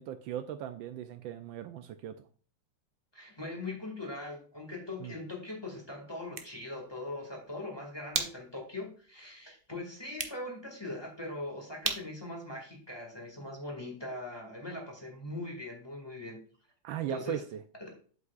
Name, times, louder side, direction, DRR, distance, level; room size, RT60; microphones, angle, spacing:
voice 1, 0.0-2.1 5.0-5.2 16.8-17.6, right 10 dB, 75° right, 9 dB, 1.3 m, -38 dB
voice 2, 3.1-16.4 17.1-17.4, left 2 dB, 10° left, -1 dB, 2.0 m, -41 dB
sound 1, 6.1-13.5, right 5 dB, 55° right, 0.6 m, -42 dB
8.1 x 7.8 x 2.4 m, 0.43 s
omnidirectional pair, 2.3 m